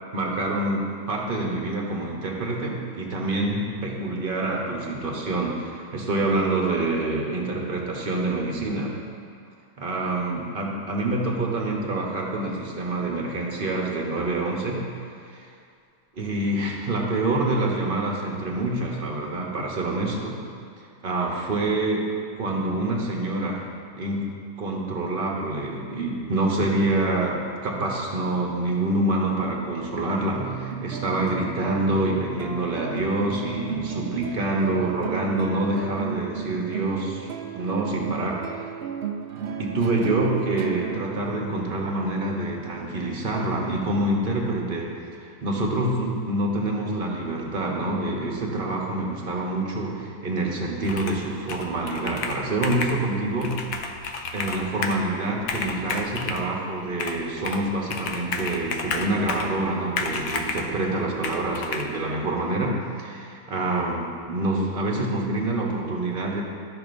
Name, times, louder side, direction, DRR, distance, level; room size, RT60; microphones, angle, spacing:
voice 1, 0.1-8.9 9.8-14.9 15.3-15.5 16.2-20.4 21.0-23.7 23.9-37.3 37.5-38.7 39.6-44.9 45.2-53.6 54.3-66.4, right 2 dB, 40° right, -1 dB, 1.0 m, -26 dB
sound 1, 30.3-43.1, right 8 dB, 85° right, 0.5 m, -35 dB
Computer keyboard, 50.8-51.2 51.5-53.0 53.4-55.0 55.4-56.4 57.0-57.6 57.9-59.5 60.0-60.7 61.2-61.8, left 4 dB, 70° left, 1.0 m, -31 dB
12.5 x 5.8 x 2.6 m, 2.3 s
omnidirectional pair, 1.6 m